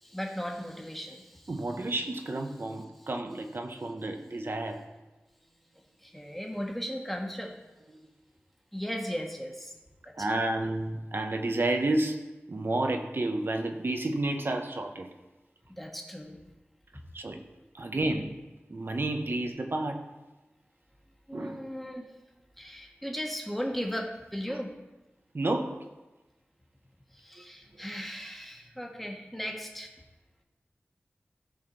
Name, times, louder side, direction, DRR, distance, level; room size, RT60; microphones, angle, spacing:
voice 1, 0.0-1.5 6.0-7.5 8.7-9.7 10.0-10.1 15.8-16.4 21.3-22.0 22.6-24.7 27.1-29.9, equal, 5° left, 1 dB, 1.4 m, -36 dB
voice 2, 1.5-4.9 10.2-15.1 17.1-17.5 17.7-20.0 21.3-21.7 22.0-22.1 24.5-24.6 25.3-25.9, right 2 dB, 60° right, 4 dB, 0.9 m, -31 dB
14.0 x 5.0 x 3.9 m, 1.1 s
wide cardioid pair, 55°, 4 cm